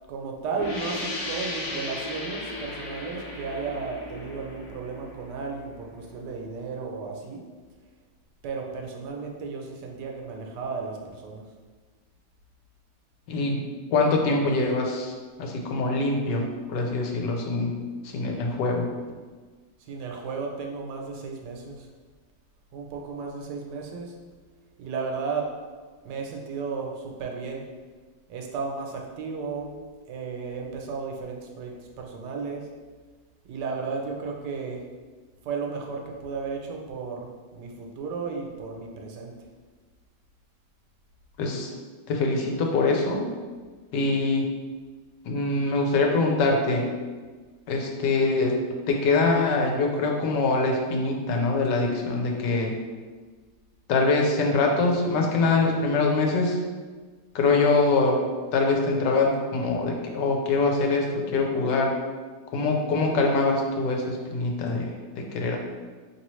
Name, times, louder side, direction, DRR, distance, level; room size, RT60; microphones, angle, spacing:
voice 1, 0.1-7.4 8.4-11.4 19.8-21.9 22.7-24.1 24.8-25.5 26.0-27.6 28.3-29.8 30.1-32.7 33.5-34.8 35.4-39.3, right 4 dB, 75° right, 1 dB, 1.2 m, -34 dB
sound 1, 0.6-6.0, left 2 dB, 60° left, 0.8 m, -36 dB
voice 2, 13.3-13.6 13.9-17.8 18.0-18.9 41.4-41.7 42.1-43.2 43.9-44.5 45.2-46.9 47.7-48.6 48.9-52.7 53.9-56.6 57.3-58.2 58.5-61.9 62.5-65.6, left 3 dB, 80° left, 1 dB, 1.2 m, -24 dB
4.3 x 3.0 x 3.0 m, 1.4 s
omnidirectional pair, 1.9 m